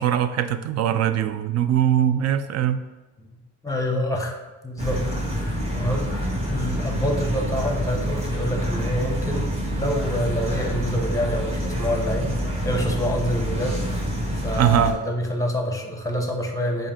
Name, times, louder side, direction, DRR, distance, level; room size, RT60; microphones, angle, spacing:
voice 1, 0.0-2.8 14.6-14.9, right 10 dB, 60° right, 11 dB, 0.4 m, -21 dB
voice 2, 3.6-4.3 4.6-5.0 5.3-6.1 6.5-12.3 12.6-13.8 14.4-16.9, equal, 10° left, 2 dB, 0.8 m, -27 dB
sound 1, 4.8-14.9, equal, 20° right, 1.0 m, -27 dB
4.8 x 2.5 x 4.3 m, 1.2 s
cardioid pair, 90°, 30 cm